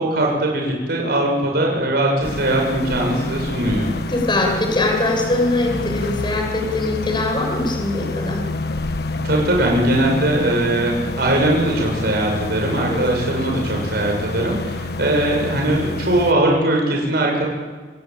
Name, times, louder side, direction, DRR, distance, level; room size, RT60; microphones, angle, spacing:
voice 1, 0.0-3.9 9.2-17.5, right 1 dB, 60° right, 0 dB, 6.3 m, -20 dB
sound 1, 2.2-16.3, left 2 dB, 60° left, 1.4 m, -28 dB
voice 2, 4.1-8.5 12.9-13.0, left 2 dB, 25° left, 1 dB, 7.2 m, -22 dB
28.5 x 18.5 x 8.9 m, 1.5 s
head